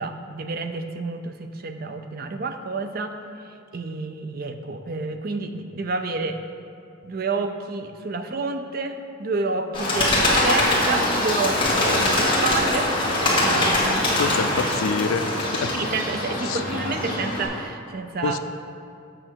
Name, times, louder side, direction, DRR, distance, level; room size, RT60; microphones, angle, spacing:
voice 1, 0.0-3.2 3.4-6.4 7.0-12.9 13.4-14.3 15.7-18.4, right 3 dB, 45° right, 7 dB, 0.5 m, -29 dB
Bird, 9.7-17.5, left 1 dB, 25° left, 1.6 m, -22 dB
voice 2, 14.2-15.7 16.5-16.6 18.2-18.4, left 5 dB, 85° left, 10 dB, 0.4 m, -27 dB
7.7 x 6.2 x 4.5 m, 2.5 s
head